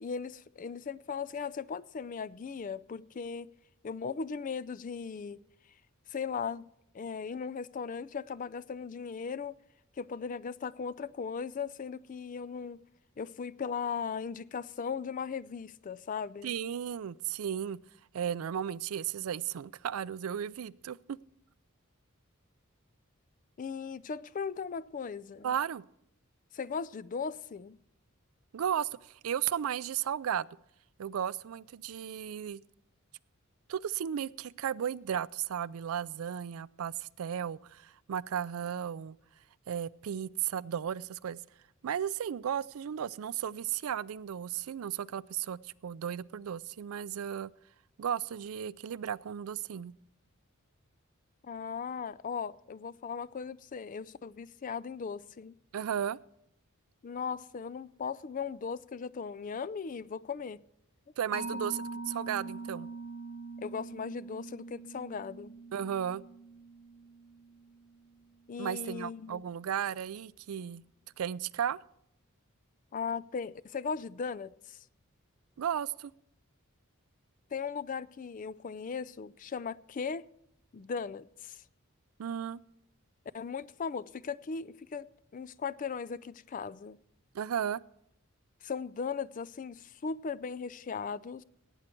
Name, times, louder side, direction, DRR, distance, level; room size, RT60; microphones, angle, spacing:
voice 1, 0.0-3.5 3.8-5.4 6.1-6.7 6.9-9.5 10.0-12.8 13.2-16.5 23.6-25.5 26.5-27.8 51.4-55.5 57.0-60.6 63.6-65.5 68.5-69.4 72.9-74.8 77.5-80.3 80.7-81.6 83.3-87.0 88.6-91.4, left 6 dB, 40° left, 0.4 m, -38 dB
voice 2, 16.4-17.8 18.1-21.2 25.4-25.8 28.5-30.5 31.0-32.6 33.7-39.2 39.7-41.4 41.8-47.5 48.0-49.9 55.7-56.2 61.2-62.9 65.7-66.2 68.6-70.8 71.2-71.8 75.6-76.1 82.2-82.6 87.3-87.8, right 9 dB, 80° right, 0.4 m, -34 dB
Mallet percussion, 61.3-68.4, right 3 dB, 65° left, 2.0 m, -43 dB
17.5 x 9.0 x 4.4 m
head